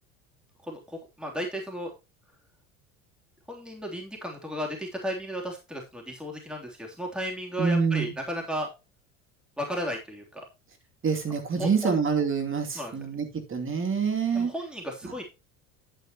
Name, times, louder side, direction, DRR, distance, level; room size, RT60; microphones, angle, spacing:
voice 1, 0.6-1.9 3.5-8.7 9.6-10.4 11.6-11.9 12.7-12.9 14.3-15.2, equal, ahead, 3.2 m, -34 dB
voice 2, 7.6-8.1 11.0-14.5 15.0-15.1, right 5 dB, 30° right, 2.7 m, -26 dB
9.8 x 9.3 x 2.9 m
hypercardioid pair, 80°, 41 cm